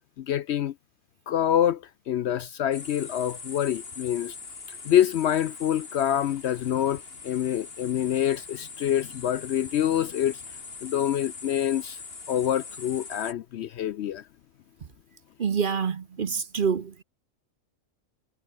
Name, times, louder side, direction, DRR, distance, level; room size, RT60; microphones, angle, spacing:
voice 1, 0.2-0.7 1.3-4.3 4.8-10.4 10.8-12.0 12.3-14.2, left 10 dB, 65° left, 0.8 m, -26 dB
sound 1, 2.7-13.3, left 4 dB, 45° left, 2.1 m, -42 dB
voice 2, 15.4-16.9, right 6 dB, 45° right, 0.9 m, -26 dB
omnidirectional pair, 1.4 m